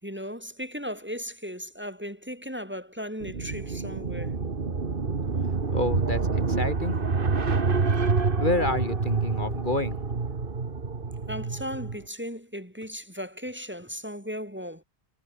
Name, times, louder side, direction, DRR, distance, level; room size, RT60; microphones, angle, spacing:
voice 1, 0.0-4.4 6.9-7.0 11.3-14.8, equal, 10° right, 3.7 m, -36 dB
sound 1, 3.2-12.0, right 4 dB, 60° right, 1.9 m, -27 dB
voice 2, 5.7-7.0 8.4-10.0, left 2 dB, 50° left, 3.3 m, -28 dB
omnidirectional pair, 1.0 m